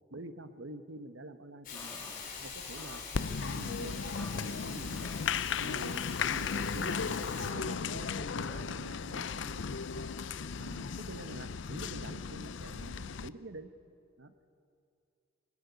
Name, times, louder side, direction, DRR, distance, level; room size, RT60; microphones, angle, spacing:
voice 1, 0.1-2.1 2.4-5.1 5.6-10.0 10.6-13.7 14.2-14.3, right 2 dB, 85° right, 10 dB, 1.2 m, -47 dB
Hiss, 1.6-7.5, left 5 dB, 45° left, 4.3 m, -44 dB
sound 1, 1.7-8.8, left 1 dB, 10° left, 1.6 m, -54 dB
Applause, 3.1-13.3, left 6 dB, 75° left, 0.5 m, -36 dB
21.5 x 20.0 x 9.7 m, 2.4 s
head